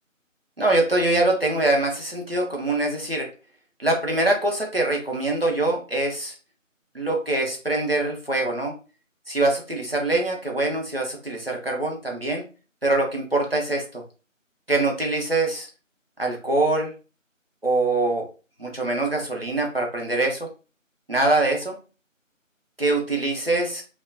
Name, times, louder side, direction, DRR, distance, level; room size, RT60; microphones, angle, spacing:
voice 1, 0.6-3.3 3.8-6.3 6.9-8.7 9.3-12.4 12.8-14.0 14.7-15.7 16.2-16.9 17.6-18.2 18.6-20.5 21.1-21.8 22.8-23.8, right 2 dB, 50° right, -1 dB, 0.7 m, -23 dB
2.4 x 2.1 x 2.4 m, 0.35 s
figure-of-eight pair, 180°, 39 cm